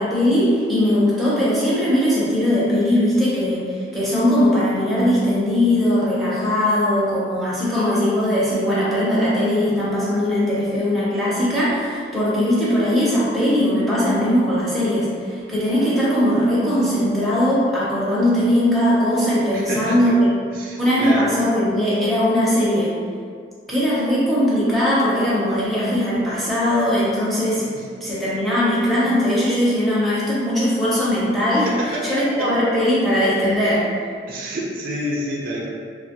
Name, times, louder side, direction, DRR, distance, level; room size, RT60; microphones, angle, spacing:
voice 1, 0.0-20.1 20.8-22.9 23.7-27.6 28.0-33.8, left 1 dB, ahead, -10 dB, 0.6 m, -20 dB
voice 2, 19.5-20.0 20.5-21.3 27.7-27.8 31.6-32.8 34.3-35.7, equal, 50° right, -4 dB, 0.4 m, -28 dB
2.9 x 2.2 x 2.8 m, 2.1 s
head